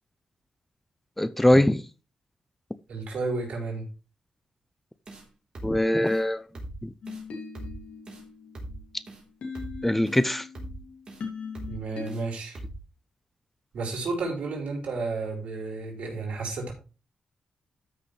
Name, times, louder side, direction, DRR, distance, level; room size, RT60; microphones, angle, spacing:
voice 1, 1.2-1.8 5.6-6.4 6.8-6.9 9.8-10.5, left 1 dB, 10° left, 0.5 m, -22 dB
voice 2, 2.9-3.8 11.7-12.6 13.7-16.7, right 3 dB, 70° right, 4.8 m, -32 dB
sound 1, 5.1-5.3 5.6-5.8 6.1-6.2 6.6-6.8 7.1-7.2 7.6-7.8 8.1-8.2 8.6-8.8 9.1-9.2 9.6-9.8 10.1-10.2 10.6-10.8 11.1-11.2 11.6-11.8 12.1-12.2 12.6-12.8, right 1 dB, 45° right, 3.7 m, -40 dB
sound 2, 7.0-12.1, left 5 dB, 75° left, 2.7 m, -40 dB
13.0 x 6.3 x 3.3 m
cardioid pair, 100°, 2 cm